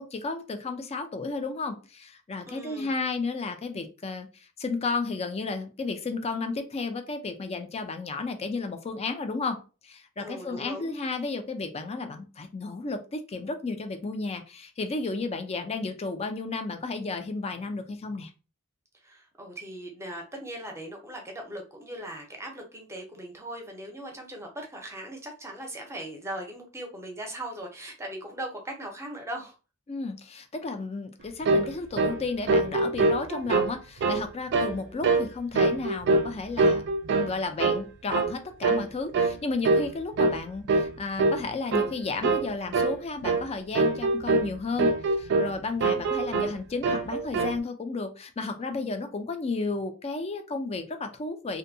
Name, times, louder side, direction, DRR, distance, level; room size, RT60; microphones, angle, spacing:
voice 1, 0.0-18.3 29.9-36.8 37.1-51.6, left 3 dB, 30° left, 7 dB, 0.4 m, -33 dB
voice 2, 2.4-2.9 10.2-10.9 18.9-29.5 34.9-35.0, right 1 dB, 15° right, 1 dB, 0.6 m, -39 dB
sound 1, 31.4-31.7 32.0-32.2 32.5-33.7 34.0-34.2 34.5-34.8 35.0-35.3 35.5-36.3 36.6-37.3 37.6-37.8 38.1-38.3 38.6-38.8 39.1-39.4 39.6-39.9 40.2-40.4 40.7-40.9 41.2-41.4 41.7-41.9 42.2-42.5 42.7-43.0 43.2-43.4 43.7-44.5 44.8-45.5 45.8-46.5 46.8-47.6, right 3 dB, 55° right, 0.4 m, -24 dB
2.6 x 2.1 x 2.6 m, 0.33 s
head